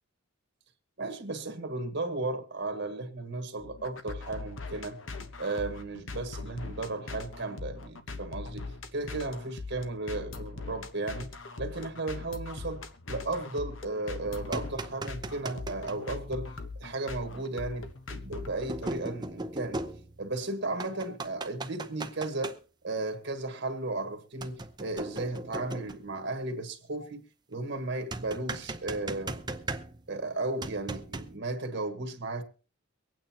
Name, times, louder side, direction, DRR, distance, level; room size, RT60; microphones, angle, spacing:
voice 1, 1.0-5.0 5.4-8.6 8.9-11.3 11.6-16.5 16.7-19.8 20.2-22.5 22.8-27.2 27.5-29.4 30.1-32.4, right 2 dB, 65° right, 1.6 m, -35 dB
sound 1, 3.6-19.0, left 3 dB, 75° left, 1.1 m, -41 dB
sound 2, 14.2-16.0 17.4-17.5 18.7-20.4 20.8-22.5 24.4-26.1 28.1-30.2 30.6-31.4, right 2 dB, 20° right, 0.7 m, -38 dB
24.0 x 9.0 x 2.9 m
head